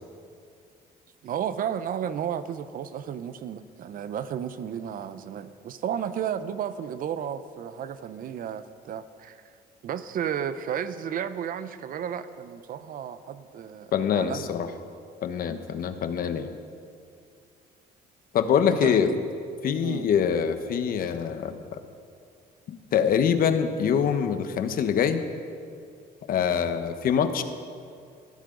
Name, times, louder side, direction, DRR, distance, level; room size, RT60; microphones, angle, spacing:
voice 1, 1.2-9.4 9.8-14.5 18.7-19.2 19.8-20.1, right 9 dB, 55° right, 12 dB, 0.8 m, -33 dB
voice 2, 13.9-14.7 15.2-16.5 18.3-19.1 19.6-21.8 22.7-25.2 26.3-27.4, left 7 dB, 60° left, 8 dB, 1.1 m, -24 dB
19.5 x 14.5 x 3.9 m, 2.3 s
cardioid pair, 110°, 17 cm